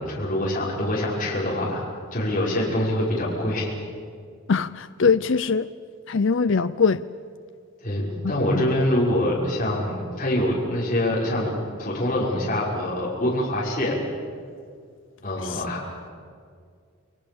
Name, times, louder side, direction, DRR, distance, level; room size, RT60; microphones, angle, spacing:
voice 1, 0.0-1.8 2.1-3.7 7.8-11.5 11.8-13.9 15.2-15.8, left 1 dB, 35° left, -5 dB, 5.8 m, -25 dB
voice 2, 4.5-5.7 6.1-7.0 8.5-8.7 15.4-15.7, left 5 dB, 60° left, 11 dB, 0.5 m, -22 dB
29.5 x 22.0 x 7.1 m, 2.1 s
head